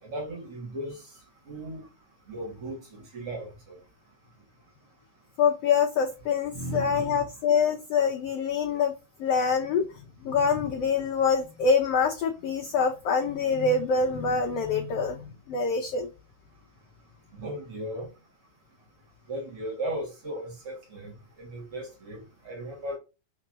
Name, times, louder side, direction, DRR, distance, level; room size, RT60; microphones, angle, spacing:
voice 1, 0.0-1.0 1.5-1.8 2.3-3.8 6.5-7.3 17.3-18.1 19.3-21.1 21.4-23.0, right 1 dB, 45° right, 3.0 m, -36 dB
voice 2, 5.4-8.9 9.2-16.1, left 5 dB, 85° left, 1.3 m, -25 dB
5.8 x 3.8 x 6.1 m
omnidirectional pair, 3.9 m